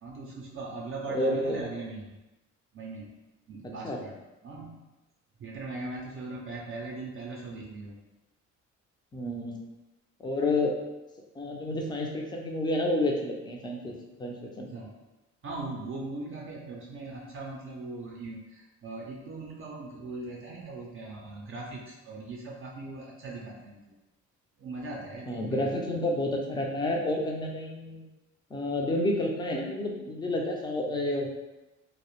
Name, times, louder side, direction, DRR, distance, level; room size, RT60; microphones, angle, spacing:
voice 1, 0.0-2.2 2.7-3.1 3.5-4.2 4.4-4.9 5.4-8.0 14.6-14.9 15.4-24.0 24.6-25.7, right 3 dB, 45° right, -2 dB, 0.4 m, -40 dB
voice 2, 1.1-1.6 3.8-4.0 9.1-9.6 10.2-10.8 11.3-14.7 25.3-28.1 28.5-31.3, left 1 dB, 15° left, 0 dB, 0.4 m, -30 dB
2.0 x 2.0 x 2.9 m, 1.0 s
cardioid pair, 90°, 30 cm